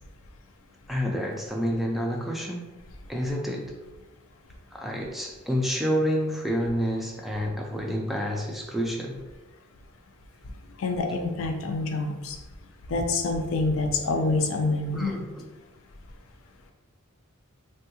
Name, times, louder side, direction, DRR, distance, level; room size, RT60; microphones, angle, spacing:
voice 1, 0.9-2.7 3.1-3.7 4.7-9.2 14.9-15.5, equal, ahead, -1 dB, 0.3 m, -29 dB
voice 2, 10.8-12.4 12.9-15.3, left 3 dB, 65° left, 4 dB, 0.4 m, -27 dB
3.5 x 2.2 x 2.8 m, 1.1 s
head